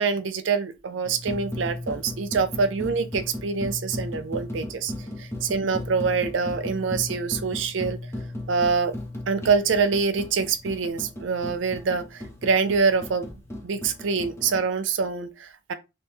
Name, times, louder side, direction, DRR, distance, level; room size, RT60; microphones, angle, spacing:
voice 1, 0.0-4.9 5.2-8.0 8.5-8.9 9.3-13.3 13.6-15.7, right 5 dB, 75° right, 0.5 m, -25 dB
sound 1, 1.0-14.7, left 1 dB, 15° left, 0.6 m, -36 dB
2.9 x 2.6 x 3.3 m
head